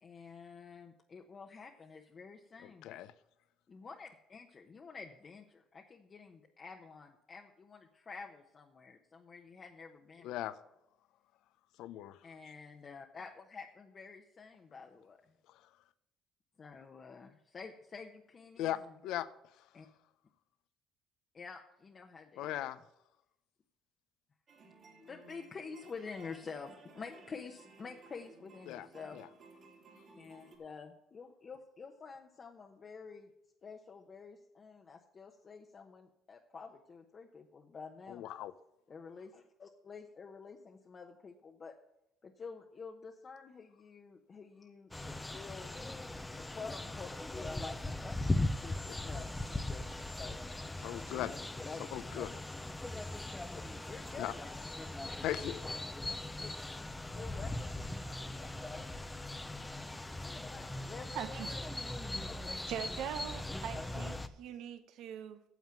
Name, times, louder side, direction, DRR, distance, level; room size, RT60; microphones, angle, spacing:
voice 1, 0.0-2.9 3.7-10.7 12.2-15.2 16.6-19.0 19.7-19.9 21.3-22.7 25.0-29.2 30.1-33.3 33.6-38.2 38.9-41.7 42.2-44.9 45.3-45.8 46.4-50.7 51.1-51.8 53.5-54.7 56.3-56.5 57.1-57.7 58.1-58.5 60.1-61.4 62.0-62.6, left 5 dB, 35° left, 2 dB, 1.0 m, -49 dB
voice 2, 10.2-10.5 11.8-12.2 18.6-19.3 22.4-22.8 28.7-28.9 29.1-29.3 38.1-38.5 50.8-51.4 51.9-52.4 54.2-54.3 55.2-55.6, left 13 dB, 75° left, 15 dB, 0.7 m, -38 dB
sound 1, 24.5-30.6, right 4 dB, 50° right, 2.8 m, -58 dB
sound 2, 44.9-64.3, left 2 dB, 10° left, 0.7 m, -39 dB
voice 3, 61.1-61.6 62.7-65.4, right 9 dB, 70° right, 11 dB, 1.0 m, -42 dB
9.3 x 7.3 x 7.6 m, 0.85 s
supercardioid pair, 90°, 0 cm